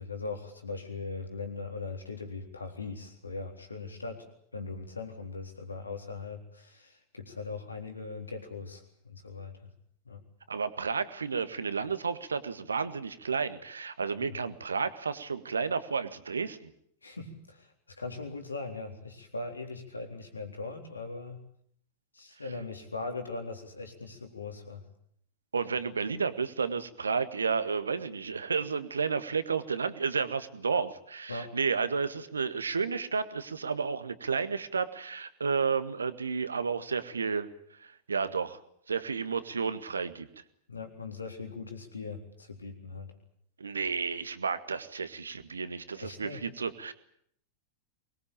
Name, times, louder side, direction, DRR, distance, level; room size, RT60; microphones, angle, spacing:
voice 1, 0.0-4.2 4.5-9.7 10.1-10.2 14.2-14.4 17.0-21.4 22.1-24.8 31.3-31.5 40.7-43.1 46.0-46.4, left 3 dB, 80° left, 5 dB, 3.8 m, -40 dB
voice 2, 10.5-16.7 25.5-37.5 37.8-38.6 38.9-40.3 43.6-46.9, right 5 dB, 75° right, 12 dB, 1.7 m, -32 dB
23.5 x 21.0 x 8.7 m, 0.68 s
figure-of-eight pair, 90°, 0 cm